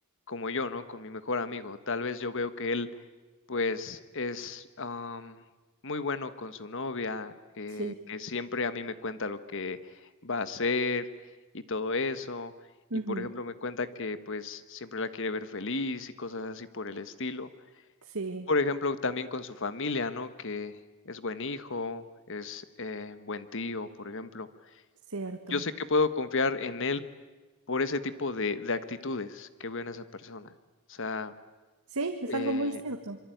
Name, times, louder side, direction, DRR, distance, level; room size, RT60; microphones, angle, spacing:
voice 1, 0.3-2.9 3.5-5.4 5.8-9.8 10.2-11.0 11.5-12.5 13.1-17.5 18.5-20.8 21.0-24.5 25.5-27.0 27.7-30.5 30.9-31.3 32.2-32.8, left 3 dB, 60° left, 12 dB, 1.4 m, -33 dB
voice 2, 12.9-13.3 18.1-18.5 25.1-25.6 31.9-33.2, right 2 dB, 85° right, 4 dB, 1.7 m, -33 dB
26.0 x 24.0 x 9.3 m, 1.2 s
head